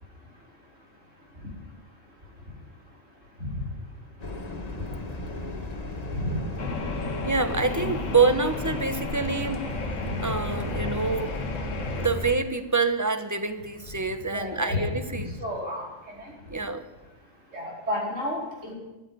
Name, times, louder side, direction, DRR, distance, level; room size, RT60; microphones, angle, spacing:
sound 1, 4.2-12.3, left 2 dB, 30° left, 1.5 m, -34 dB
sound 2, 6.6-12.1, left 4 dB, 70° left, 1.6 m, -35 dB
voice 1, 7.2-9.6 10.2-11.4 11.9-15.3 16.5-16.8, right 4 dB, 15° right, 9 dB, 0.8 m, -26 dB
voice 2, 14.3-15.9 16.2-16.3 17.5-18.7, left 1 dB, 70° right, -3 dB, 4.9 m, -31 dB
14.0 x 9.0 x 9.2 m, 1.1 s
omnidirectional pair, 1.3 m